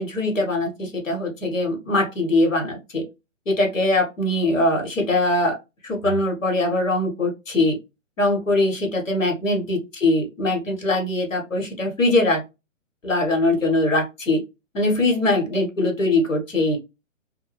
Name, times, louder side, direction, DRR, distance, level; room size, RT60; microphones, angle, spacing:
voice 1, 0.0-3.0 3.5-5.6 5.8-7.8 8.2-12.4 13.0-14.4 14.7-16.8, left 2 dB, 75° left, 1.3 m, -22 dB
2.7 x 2.2 x 3.0 m
figure-of-eight pair, 125°, 39 cm